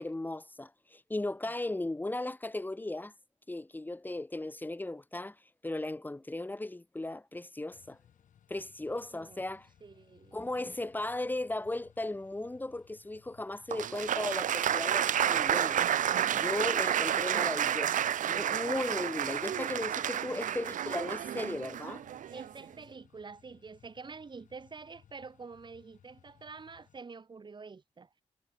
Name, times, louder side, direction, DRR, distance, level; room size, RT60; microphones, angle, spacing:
voice 1, 0.0-3.1 3.5-8.0 8.5-9.7 10.3-15.9 16.3-22.0, left 2 dB, 15° left, 2.1 m, -36 dB
sound 1, 7.7-27.0, left 9 dB, 80° left, 7.3 m, -63 dB
voice 2, 9.8-10.5 20.2-20.5 22.3-28.2, right 4 dB, 35° right, 3.8 m, -47 dB
Applause, 13.7-22.6, right 10 dB, 85° right, 1.2 m, -30 dB
wide cardioid pair, 115°, 13 cm